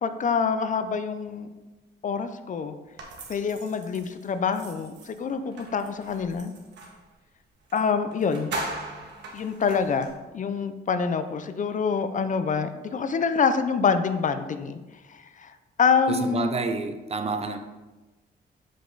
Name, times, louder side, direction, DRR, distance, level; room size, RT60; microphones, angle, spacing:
voice 1, 0.0-1.5 2.0-2.8 3.3-6.5 7.7-8.5 9.3-14.8 15.1-15.5 15.8-16.5, left 5 dB, 45° left, 10 dB, 0.5 m, -26 dB
sound 1, 3.0-7.0 7.7-7.8 8.1-10.1, right 2 dB, 80° right, 1.5 m, -39 dB
voice 2, 16.1-17.6, right 3 dB, 35° right, 7 dB, 0.7 m, -29 dB
7.7 x 5.2 x 3.9 m, 1.2 s
cardioid pair, 105°, 18 cm